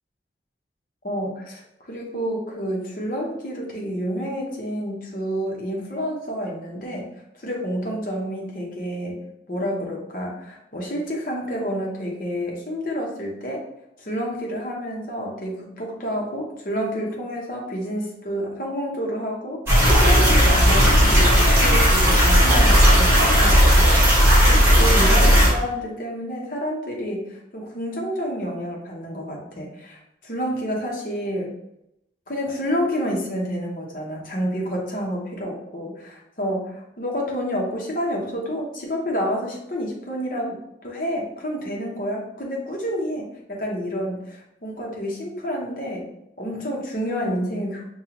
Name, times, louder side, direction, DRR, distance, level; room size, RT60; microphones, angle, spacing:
voice 1, 1.0-13.6 14.0-31.6 32.3-46.1 46.4-47.8, equal, 50° left, -2 dB, 0.9 m, -29 dB
sound 1, 19.7-25.5, equal, 15° right, 1.4 m, -15 dB
5.3 x 2.3 x 2.9 m, 0.83 s
head